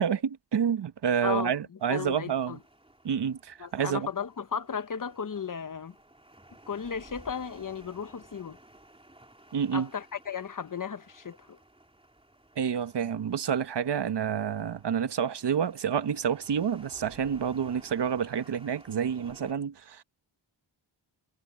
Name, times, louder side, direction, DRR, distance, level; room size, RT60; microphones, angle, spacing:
voice 1, 0.0-2.6 3.0-4.1 9.5-9.9 12.6-20.0, right 8 dB, 60° right, 1.1 m, -28 dB
voice 2, 1.2-2.6 3.6-5.9 6.7-8.6 9.7-11.6, left 7 dB, 45° left, 1.0 m, -35 dB
sound 1, 1.8-19.5, right 1 dB, 10° right, 3.5 m, -56 dB
wide cardioid pair, 105°, 46 cm